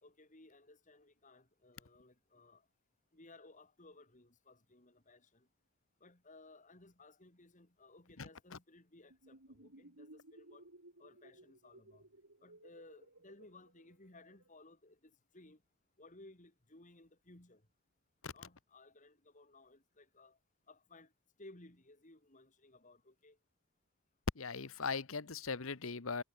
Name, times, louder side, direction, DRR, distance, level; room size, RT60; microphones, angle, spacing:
voice 1, 0.0-2.7 3.1-5.5 6.0-10.7 11.0-12.0 12.4-15.6 16.0-17.7 18.3-20.4 20.7-21.1 21.4-23.4, left 2 dB, 35° left, 3.0 m, -60 dB
sound 1, 9.1-14.5, right 1 dB, 70° right, 3.7 m, -60 dB
voice 2, 24.4-26.2, left 5 dB, 65° left, 1.0 m, -39 dB
head